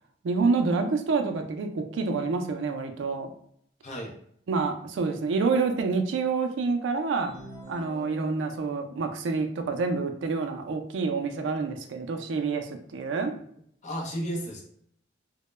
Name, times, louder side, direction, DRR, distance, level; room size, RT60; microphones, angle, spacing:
voice 1, 0.2-3.3 4.5-7.3 7.7-13.3, right 4 dB, 75° right, 5 dB, 0.3 m, -27 dB
voice 2, 3.8-4.1 13.8-14.6, equal, 40° left, -1 dB, 0.6 m, -33 dB
sound 1, 7.2-8.8, equal, 25° right, 0.6 m, -47 dB
2.1 x 2.1 x 3.1 m, 0.66 s
head